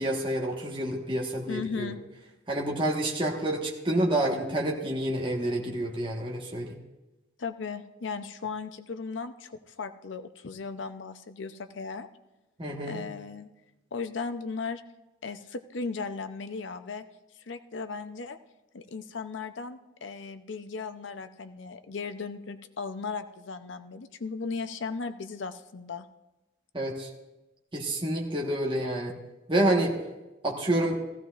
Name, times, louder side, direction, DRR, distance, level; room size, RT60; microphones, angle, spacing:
voice 1, 0.0-1.9 2.5-6.8 12.6-13.0 26.7-27.1 27.7-29.1 29.5-30.0 30.4-31.0, right 1 dB, 25° right, -1 dB, 1.3 m, -28 dB
voice 2, 1.5-2.0 7.4-12.1 12.9-13.5 13.9-14.8 15.2-17.0 17.5-18.4 18.7-26.1, left 4 dB, 70° left, 10 dB, 0.6 m, -36 dB
16.5 x 15.0 x 2.5 m, 1.1 s
head